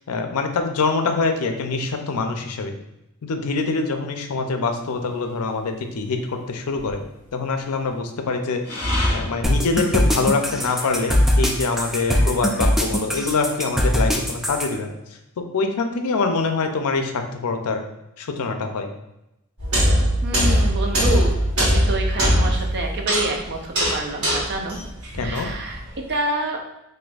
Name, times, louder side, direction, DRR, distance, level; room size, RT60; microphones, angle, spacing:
voice 1, 0.0-2.7 3.2-7.0 7.3-8.6 9.1-14.9 15.5-17.8 18.2-18.9 25.2-25.5, left 4 dB, 75° left, 5 dB, 0.5 m, -24 dB
sound 1, 5.2-5.6 6.7-7.4 8.6-11.5 11.9-12.6, left 1 dB, 50° left, 1.1 m, -30 dB
sound 2, 9.4-14.7, equal, ahead, 0.3 m, -20 dB
sound 3, 19.6-25.9, equal, 70° right, 1.3 m, -21 dB
voice 2, 20.2-24.8 25.1-25.8 26.1-26.6, right 2 dB, 50° right, 2 dB, 0.5 m, -28 dB
4.1 x 2.6 x 2.3 m, 0.88 s
head